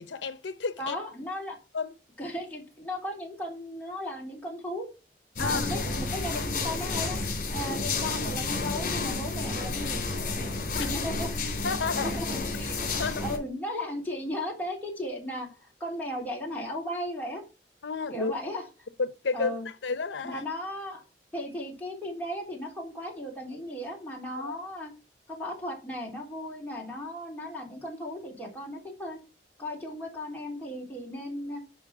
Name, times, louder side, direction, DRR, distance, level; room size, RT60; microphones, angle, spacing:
voice 1, 0.0-1.0 1.7-1.9 5.4-5.7 10.7-10.9 11.6-12.2 13.0-13.2 17.8-18.3 19.0-20.4 24.4-24.6, left 4 dB, 85° left, 0.7 m, -31 dB
voice 2, 0.8-1.6 2.2-4.9 5.4-7.2 7.5-10.0 10.8-11.3 12.2-12.3 12.6-17.4 18.1-18.6 19.3-19.7 20.2-21.0 21.3-24.9 25.3-29.2 29.6-31.6, left 1 dB, 10° left, 3.5 m, -36 dB
sound 1, 5.4-13.4, left 3 dB, 50° left, 3.4 m, -31 dB
11.0 x 4.0 x 5.9 m
head